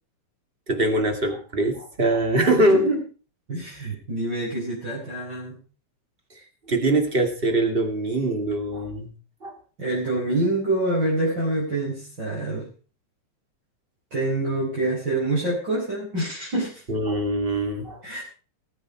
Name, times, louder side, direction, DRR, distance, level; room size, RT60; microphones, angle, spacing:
voice 1, 0.7-2.9 6.7-9.1 9.4-9.5 16.9-18.0, right 1 dB, 20° right, 5 dB, 2.4 m, -23 dB
voice 2, 2.7-3.0 3.5-5.6 9.8-12.7 14.1-16.8 18.0-18.2, right 2 dB, 35° right, -5 dB, 5.4 m, -26 dB
19.5 x 9.1 x 4.8 m, 0.37 s
omnidirectional pair, 3.3 m